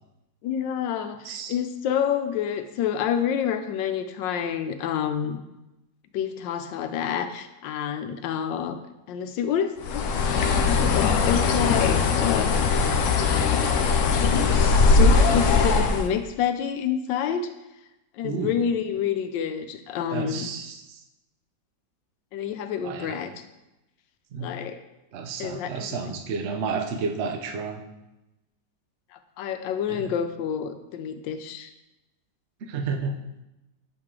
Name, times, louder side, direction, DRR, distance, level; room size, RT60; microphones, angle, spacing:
voice 1, 0.4-5.4 6.1-8.8 9.1-10.0 10.5-12.5 13.5-13.6 14.2-17.5 18.2-20.5 22.3-23.3 24.4-24.8 25.4-26.1 29.4-31.7, left 8 dB, 85° left, 9 dB, 1.3 m, -28 dB
Bird, 9.8-16.1, left 4 dB, 70° left, 0.7 m, -20 dB
voice 2, 18.2-18.6 20.1-21.0 22.8-23.2 24.3-24.6 25.1-27.8 29.9-30.1 32.6-33.2, right 5 dB, 60° right, 5 dB, 0.7 m, -31 dB
7.4 x 4.8 x 3.7 m, 0.96 s
omnidirectional pair, 1.9 m